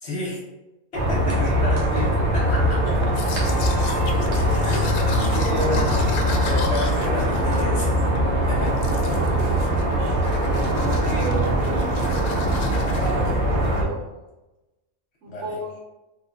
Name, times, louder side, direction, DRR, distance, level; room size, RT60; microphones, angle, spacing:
voice 1, 0.0-0.4 0.9-3.0 4.6-5.0 5.3-8.0 8.3-8.7 15.3-15.6, left 1 dB, 55° left, -4 dB, 1.0 m, -32 dB
sound 1, 0.9-13.8, equal, 80° right, 1.3 m, -22 dB
voice 2, 1.0-1.6 2.7-3.6 4.3-5.7 8.9-10.4 10.8-14.1 15.2-15.8, right 3 dB, 60° right, -2 dB, 1.1 m, -35 dB
Domestic sounds home sounds, 3.0-8.2 8.6-9.3 9.6-9.9 10.2-13.1, left 5 dB, 85° left, 1.0 m, -36 dB
3.4 x 2.2 x 3.7 m, 1.0 s
omnidirectional pair, 1.5 m